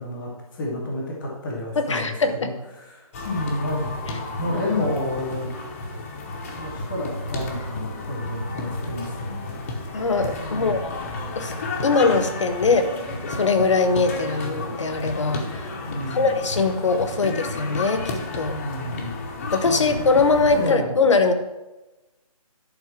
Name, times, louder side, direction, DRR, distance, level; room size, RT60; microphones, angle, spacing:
voice 1, 0.0-2.1 2.4-3.9 4.4-5.5 6.5-9.6 10.4-10.8 15.8-16.3 18.5-19.2 19.7-20.1 20.5-20.9, left 1 dB, ahead, -13 dB, 0.4 m, -30 dB
voice 2, 1.8-2.5 4.5-4.6 9.9-11.0 11.4-11.5 11.8-12.9 13.3-18.5 19.5-21.3, left 4 dB, 55° left, 9 dB, 1.1 m, -22 dB
sound 1, 3.1-20.7, left 2 dB, 20° left, 1.0 m, -32 dB
11.0 x 4.4 x 6.0 m, 1.0 s
hypercardioid pair, 165°, 19 cm